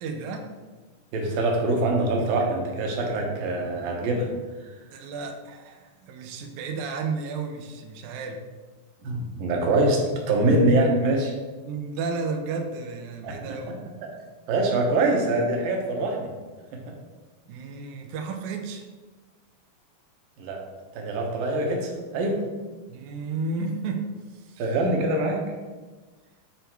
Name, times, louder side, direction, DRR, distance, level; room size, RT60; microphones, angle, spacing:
voice 1, 0.0-0.5 4.9-8.4 11.7-13.8 15.1-15.2 17.5-18.8 22.9-24.1 24.3-24.6, right 4 dB, 90° right, 3 dB, 1.7 m, -32 dB
voice 2, 1.1-4.3 9.0-11.3 13.2-13.3 14.5-16.3 20.4-20.6 20.9-22.4 24.6-25.4, right 2 dB, 70° right, 1 dB, 2.6 m, -24 dB
9.0 x 3.4 x 4.5 m, 1.3 s
omnidirectional pair, 4.4 m